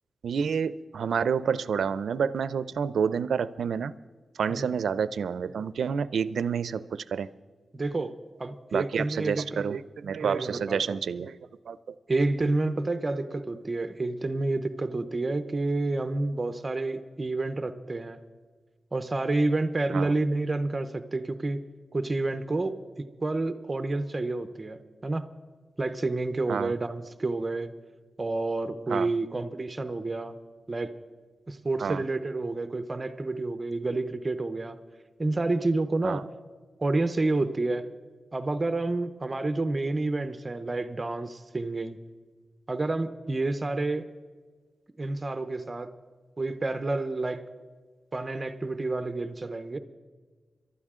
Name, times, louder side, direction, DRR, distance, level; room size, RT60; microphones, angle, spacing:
voice 1, 0.2-3.9 4.4-7.3 8.7-11.4 11.7-11.8 19.9-20.1 26.5-26.7 28.9-29.1 31.8-32.0 36.0-36.2, right 6 dB, 90° right, 16 dB, 0.5 m, -29 dB
voice 2, 7.7-8.1 8.4-9.7 10.2-11.0 12.1-18.2 18.9-21.6 21.9-22.8 23.2-25.3 25.8-27.7 28.2-30.3 30.7-30.9 31.5-34.8 35.2-36.3 36.8-37.8 38.3-42.0 42.7-44.1 45.0-45.9 46.4-47.5 48.1-49.8, right 2 dB, 25° right, 11 dB, 0.7 m, -29 dB
23.0 x 12.5 x 3.7 m, 1.5 s
wide cardioid pair, 120°, 0 cm